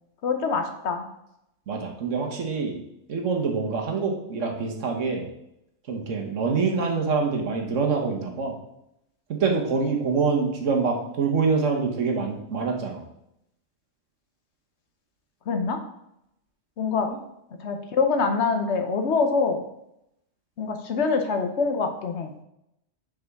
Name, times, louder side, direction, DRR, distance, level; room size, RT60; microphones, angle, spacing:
voice 1, 0.2-1.1 15.5-15.8 16.8-17.1 17.6-19.6 20.6-22.3, left 4 dB, 65° left, 5 dB, 1.0 m, -25 dB
voice 2, 1.7-2.8 3.1-5.3 5.9-8.6 9.3-13.0, right 4 dB, 75° right, 2 dB, 1.4 m, -25 dB
6.9 x 5.2 x 3.5 m, 0.81 s
omnidirectional pair, 1.3 m